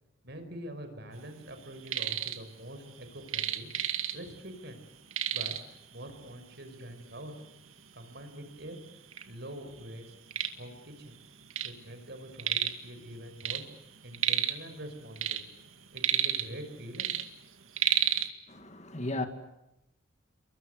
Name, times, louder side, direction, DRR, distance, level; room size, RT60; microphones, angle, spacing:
voice 1, 0.2-3.7 4.1-4.8 5.3-7.3 7.9-8.8 9.3-10.1 10.5-11.1 11.6-13.6 14.0-15.4 15.9-17.1, right 1 dB, 50° right, 5.4 m, -45 dB
sound 1, 1.6-2.4 2.7-4.4 4.7-4.8 5.1-5.8 6.6-6.7 7.2-7.3 8.0-8.1 8.4-9.2 9.7-11.8 12.0-12.9 13.2-14.7 15.0-16.7 16.9-18.3, right 11 dB, 80° right, 2.2 m, -31 dB
voice 2, 18.5-19.3, left 2 dB, 30° left, 2.3 m, -35 dB
29.0 x 23.5 x 8.2 m
head